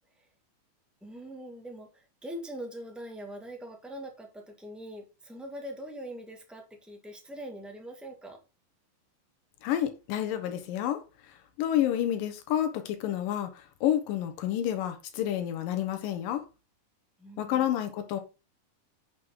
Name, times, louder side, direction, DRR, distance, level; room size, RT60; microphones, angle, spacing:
voice 1, 1.0-8.4 17.2-17.6, equal, ahead, 0.4 m, -42 dB
voice 2, 9.6-11.0 11.6-16.4 17.4-18.2, left 11 dB, 85° left, 2.8 m, -29 dB
9.3 x 6.3 x 3.7 m
omnidirectional pair, 3.8 m